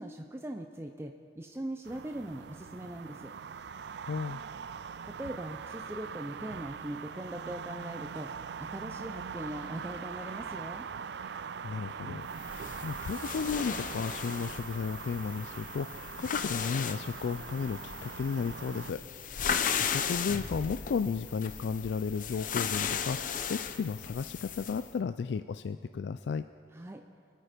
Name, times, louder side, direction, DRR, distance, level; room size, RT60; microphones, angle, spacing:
voice 1, 0.0-3.3 5.1-8.3 8.7-10.9 26.7-27.0, right 1 dB, 15° right, 4 dB, 0.5 m, -40 dB
sound 1, 1.8-18.9, right 6 dB, 75° right, 0.4 m, -42 dB
voice 2, 4.1-4.4 11.6-19.0 19.4-26.4, left 5 dB, 75° left, 11 dB, 0.3 m, -34 dB
sound 2, 12.3-24.9, left 7 dB, 50° left, 0.7 m, -36 dB
25.0 x 9.2 x 5.1 m, 2.4 s
head